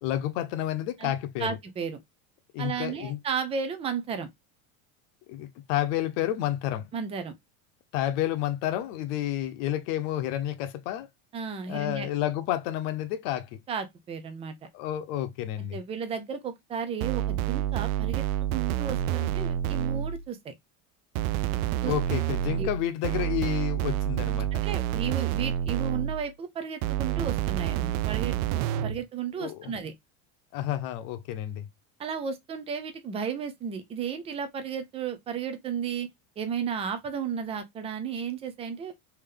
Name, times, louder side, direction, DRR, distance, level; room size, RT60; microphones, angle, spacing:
voice 1, 0.0-1.5 2.5-3.2 5.3-6.9 7.9-11.1 11.7-13.6 14.7-15.8 21.8-24.6 28.8-28.9 29.4-29.8 30.5-31.7, left 12 dB, 65° left, 0.8 m, -30 dB
voice 2, 1.4-2.0 2.6-4.3 6.9-7.3 11.3-12.1 13.7-14.6 15.7-18.2 18.5-20.5 21.8-21.9 22.6-22.7 24.5-29.9 32.0-36.1 36.4-38.9, right 7 dB, 15° right, 0.3 m, -33 dB
sound 1, 17.0-20.3 21.2-26.3 26.8-29.0, right 11 dB, 85° right, 0.5 m, -28 dB
3.5 x 2.8 x 3.5 m
supercardioid pair, 150°, 42 cm